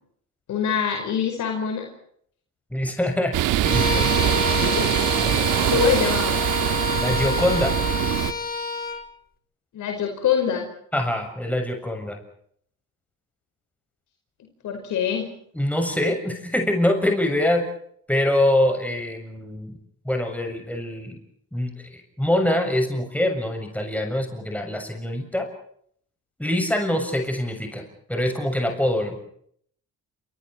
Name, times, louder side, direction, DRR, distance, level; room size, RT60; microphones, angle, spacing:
voice 1, 0.5-1.9 4.5-4.9 5.7-6.4 9.7-10.6 14.6-15.2, left 8 dB, 75° left, 3 dB, 5.3 m, -24 dB
voice 2, 2.7-3.4 3.7-4.1 5.2-5.9 6.9-7.8 10.9-12.2 15.5-17.6 18.1-19.8 20.1-21.2 21.5-25.5 26.4-27.8 28.1-29.2, left 1 dB, 5° left, 4 dB, 7.2 m, -24 dB
sound 1, 3.3-8.3, right 12 dB, 85° right, 1.6 m, -23 dB
Bowed string instrument, 3.6-9.0, left 4 dB, 30° left, 4.6 m, -28 dB
29.0 x 28.0 x 4.7 m, 0.65 s
cardioid pair, 90°, 30 cm